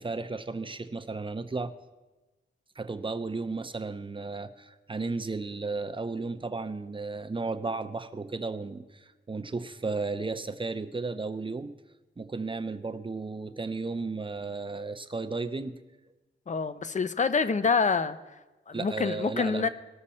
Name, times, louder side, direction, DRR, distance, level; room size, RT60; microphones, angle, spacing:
voice 1, 0.0-1.7 2.8-11.7 12.2-15.8 18.7-19.7, right 3 dB, 25° right, 9 dB, 0.5 m, -34 dB
voice 2, 16.5-18.2 18.7-19.7, left 5 dB, 35° left, 13 dB, 0.5 m, -26 dB
19.5 x 6.5 x 4.2 m, 1.1 s
wide cardioid pair, 130°, 21 cm